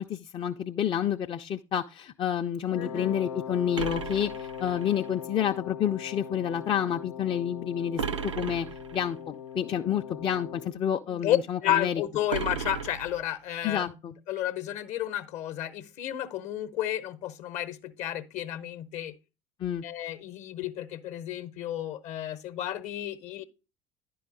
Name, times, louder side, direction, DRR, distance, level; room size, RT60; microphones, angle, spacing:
voice 1, 0.0-8.7 8.9-12.0 13.6-14.1 19.6-19.8, left 9 dB, 35° left, 0.5 m, -29 dB
Wind instrument woodwind instrument, 2.7-10.8, left 8 dB, 85° left, 0.7 m, -40 dB
voice 2, 2.8-3.2 11.1-13.8 14.3-19.1 19.8-23.4, left 12 dB, 50° left, 0.8 m, -32 dB
sound 1, 3.7-5.1 8.0-9.1 12.3-13.6, right 6 dB, 85° right, 0.5 m, -35 dB
10.5 x 4.7 x 3.9 m
figure-of-eight pair, 65°, 15 cm